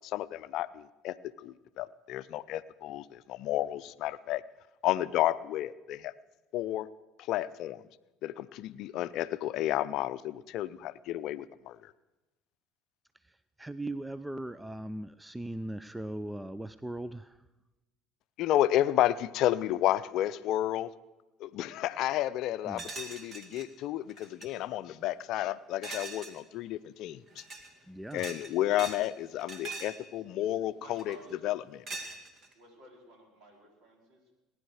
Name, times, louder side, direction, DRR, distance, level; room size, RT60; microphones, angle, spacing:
voice 1, 0.0-4.4 4.8-6.1 6.5-6.9 7.2-7.8 8.2-11.9 18.4-20.9 21.4-27.4 28.1-31.2 31.4-31.6, left 13 dB, 60° left, 14 dB, 0.5 m, -31 dB
voice 2, 13.3-17.4 22.6-22.9 27.9-28.2, right 1 dB, 10° right, 15 dB, 0.5 m, -39 dB
sound 1, 22.8-23.7 24.1-24.5 25.8-26.4 27.3-27.7 28.1-29.1 29.4-30.0 31.0-31.3 31.9-32.5, right 3 dB, 40° right, 2.3 m, -42 dB
voice 3, 30.1-31.5 32.5-34.3, right 1 dB, 60° right, 2 dB, 4.4 m, -54 dB
19.5 x 10.0 x 6.4 m, 1.0 s
hypercardioid pair, 65°, 0 cm